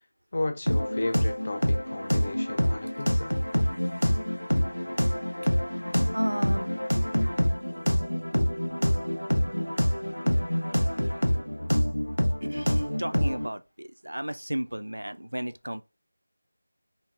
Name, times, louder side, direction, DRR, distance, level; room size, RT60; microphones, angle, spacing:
voice 1, 0.3-3.3, left 2 dB, 35° left, 0.4 m, -33 dB
sound 1, 0.7-13.5, equal, 80° left, 0.6 m, -26 dB
voice 2, 6.1-6.7 12.4-15.8, right 1 dB, 75° right, 0.3 m, -34 dB
3.8 x 2.0 x 2.4 m
figure-of-eight pair, 165°, 0 cm